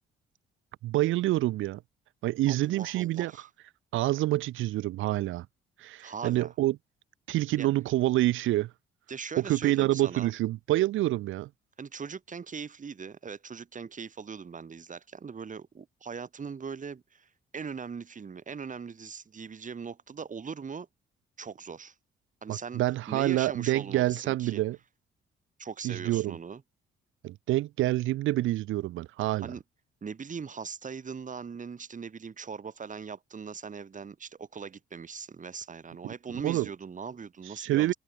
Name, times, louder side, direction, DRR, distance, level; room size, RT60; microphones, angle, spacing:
voice 1, 0.8-1.8 2.2-3.3 3.9-5.5 5.8-6.8 7.3-8.7 9.4-11.5 22.5-24.8 25.8-26.4 27.2-29.5 36.3-36.7 37.6-37.9, right 16 dB, 85° right, 1.0 m, -27 dB
voice 2, 2.5-3.5 6.0-6.5 7.6-7.7 9.1-10.3 11.8-17.3 17.5-20.9 21.4-21.9 22.4-22.8 23.1-24.6 25.6-26.6 29.4-29.6 30.0-38.0, right 6 dB, 40° right, 6.6 m, -40 dB
cardioid pair, 90°, 20 cm